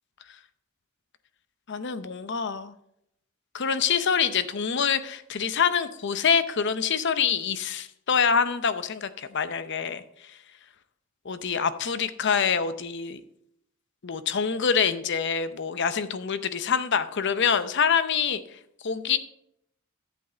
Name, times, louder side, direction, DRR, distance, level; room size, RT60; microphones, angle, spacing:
voice 1, 1.7-2.7 3.5-10.4 11.2-13.2 14.0-18.4 18.8-19.2, left 6 dB, 55° left, 12 dB, 0.6 m, -26 dB
11.0 x 8.0 x 3.9 m, 0.76 s
head